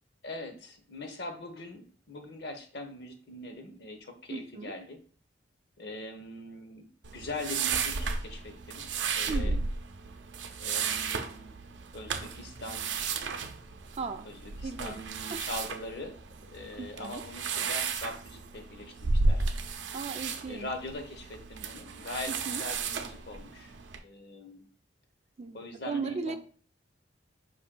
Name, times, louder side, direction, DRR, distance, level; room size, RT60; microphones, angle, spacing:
voice 1, 0.2-5.0 5.8-8.9 9.2-9.6 10.6-11.6 11.9-12.9 14.2-16.2 16.5-19.4 20.5-23.7 24.0-24.7 25.5-26.4, left 2 dB, 60° left, 6 dB, 0.8 m, -42 dB
voice 2, 4.3-4.7 9.3-9.7 13.9-14.3 14.6-15.0 15.3-15.5 16.8-17.2 19.9-20.7 22.3-22.6 25.4-26.4, right 4 dB, 35° right, 8 dB, 0.4 m, -37 dB
sound 1, 7.0-24.0, right 4 dB, 80° right, 0.5 m, -34 dB
5.0 x 2.6 x 3.7 m, 0.42 s
head